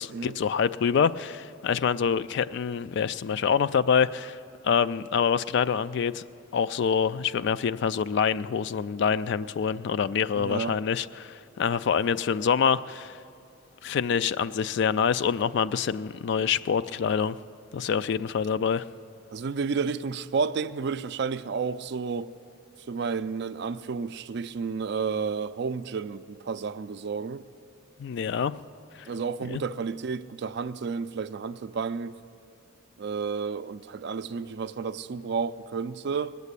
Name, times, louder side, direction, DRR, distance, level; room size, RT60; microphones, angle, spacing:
voice 1, 0.0-4.4 4.6-6.2 6.5-13.2 13.8-17.4 17.7-18.8 28.0-28.5 29.5-29.6, left 7 dB, 60° left, 0.3 m, -26 dB
voice 2, 10.3-10.8 19.3-22.3 22.9-27.4 29.1-32.1 33.0-36.4, right 5 dB, 60° right, 0.4 m, -31 dB
19.5 x 8.2 x 8.2 m
head